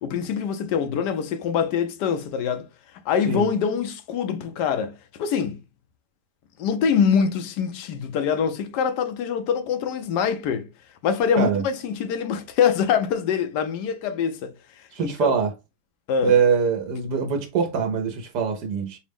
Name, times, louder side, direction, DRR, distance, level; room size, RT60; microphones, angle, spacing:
voice 1, 0.0-2.7 3.1-5.6 6.6-10.7 11.0-14.5 15.0-15.3 16.1-16.4, left 7 dB, 90° left, 1.2 m, -24 dB
voice 2, 14.9-15.5 16.2-19.0, right 6 dB, 80° right, 1.2 m, -23 dB
4.9 x 2.0 x 3.4 m
omnidirectional pair, 1.7 m